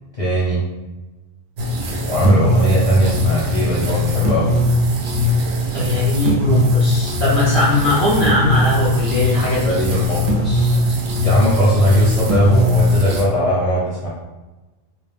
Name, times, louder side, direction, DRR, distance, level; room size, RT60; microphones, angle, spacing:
voice 1, 0.2-0.6 2.0-4.6 9.6-10.8 11.2-14.1, right 1 dB, 40° left, -8 dB, 0.5 m, -18 dB
sound 1, 1.6-13.2, left 1 dB, 65° right, 0.7 m, -19 dB
voice 2, 5.7-9.8, left 1 dB, 40° right, -8 dB, 0.4 m, -19 dB
2.3 x 2.1 x 3.2 m, 1.1 s
omnidirectional pair, 1.3 m